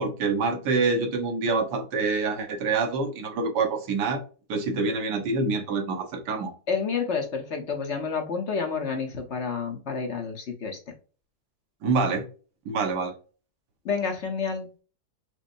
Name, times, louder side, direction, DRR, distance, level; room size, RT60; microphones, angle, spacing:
voice 1, 0.0-4.2 4.5-6.5 11.8-12.2 12.6-13.1, right 4 dB, 85° right, 1.5 m, -26 dB
voice 2, 6.7-10.8 13.8-14.7, left 5 dB, 50° left, 1.0 m, -29 dB
5.2 x 2.1 x 2.5 m
omnidirectional pair, 1.7 m